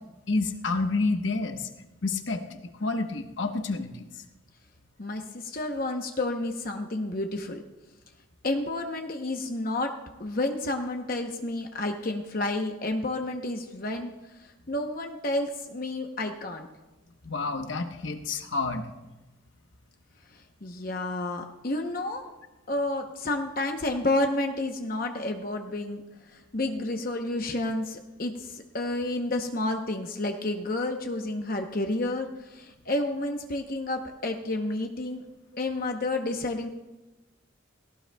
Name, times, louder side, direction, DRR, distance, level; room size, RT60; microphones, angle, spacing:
voice 1, 0.3-1.7 2.0-2.4 2.8-4.0 17.2-18.8, left 3 dB, 70° left, 6 dB, 1.1 m, -29 dB
voice 2, 5.0-7.6 8.4-9.9 10.2-14.1 14.7-16.7 20.6-22.2 22.7-26.0 26.3-35.2 35.6-36.7, left 2 dB, 45° left, 3 dB, 0.8 m, -30 dB
18.0 x 17.0 x 2.3 m, 1.1 s
head